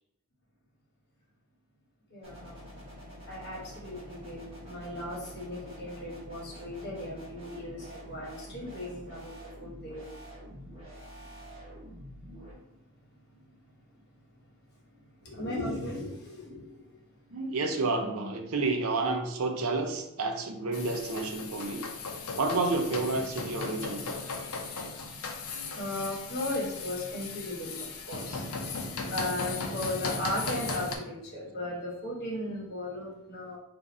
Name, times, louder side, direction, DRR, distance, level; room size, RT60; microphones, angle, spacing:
voice 1, 2.1-2.6 3.3-10.1 11.8-11.9 12.5-12.7 13.3-13.4 14.9-16.8 25.3-25.4 25.6-28.4 28.9-33.6, left 1 dB, 50° left, -4 dB, 1.3 m, -37 dB
sound 1, 2.2-12.5, equal, 25° right, 1.1 m, -47 dB
voice 2, 17.3-21.8 22.4-24.0, right 3 dB, 75° right, 4 dB, 0.6 m, -30 dB
sound 2, 20.7-31.0, left 4 dB, 75° left, 0.6 m, -37 dB
3.7 x 2.5 x 4.1 m, 0.86 s
head